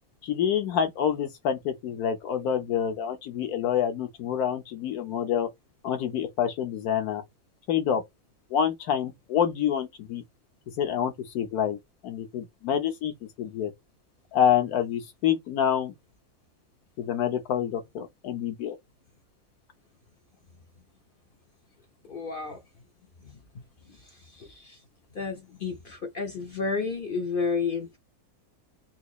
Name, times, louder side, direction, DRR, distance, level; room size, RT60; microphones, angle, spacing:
voice 1, 0.2-5.5 5.8-7.2 7.7-8.0 8.5-10.2 10.8-11.8 12.0-13.7 14.3-15.9 17.0-18.8, left 9 dB, 80° left, 1.3 m, -27 dB
voice 2, 22.0-22.6 23.2-23.4 23.8-24.8 25.1-28.0, left 4 dB, 55° left, 0.6 m, -32 dB
3.9 x 2.9 x 2.3 m
omnidirectional pair, 1.6 m